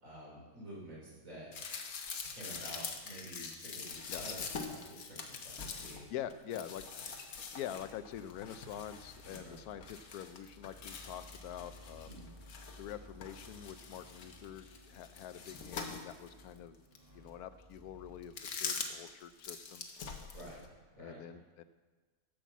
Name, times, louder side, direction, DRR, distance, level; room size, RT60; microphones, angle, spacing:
voice 1, 0.0-1.7 2.3-6.1 9.2-9.6 12.1-12.3 20.3-20.7 21.0-21.2, right 1 dB, 65° right, -5 dB, 3.9 m, -50 dB
sound 1, 1.5-12.9 13.2-16.4 16.9-17.0 18.2-19.1 19.4-20.7, left 5 dB, 70° left, 1.4 m, -44 dB
voice 2, 5.8-6.8 7.5-12.2 12.8-16.8 17.1-19.8 21.0-21.6, left 10 dB, 90° left, 13 dB, 1.1 m, -45 dB
sound 2, 7.7-18.8, left 1 dB, 15° right, 1.8 m, -57 dB
10.0 x 6.2 x 7.2 m, 1.3 s
omnidirectional pair, 1.6 m